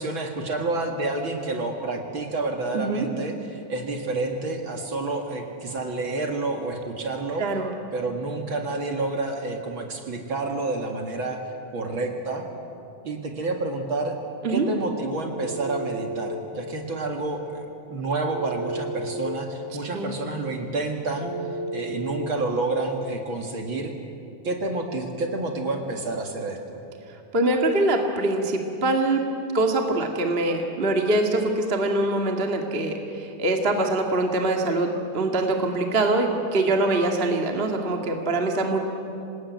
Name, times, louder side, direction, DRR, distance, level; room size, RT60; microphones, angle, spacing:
voice 1, 0.0-7.4 7.9-11.4 11.7-12.4 13.0-14.1 14.5-21.3 21.7-23.9 24.4-26.8, right 2 dB, 45° right, 3 dB, 2.5 m, -29 dB
voice 2, 2.7-3.1 7.4-7.7 14.4-14.7 19.9-20.1 27.1-29.3 29.5-38.8, right 2 dB, 25° right, 2 dB, 1.6 m, -24 dB
Telephone, 15.3-16.3 18.3-19.3 21.2-22.2, right 2 dB, 75° left, 5.1 m, -32 dB
26.0 x 19.5 x 9.3 m, 2.8 s
omnidirectional pair, 3.4 m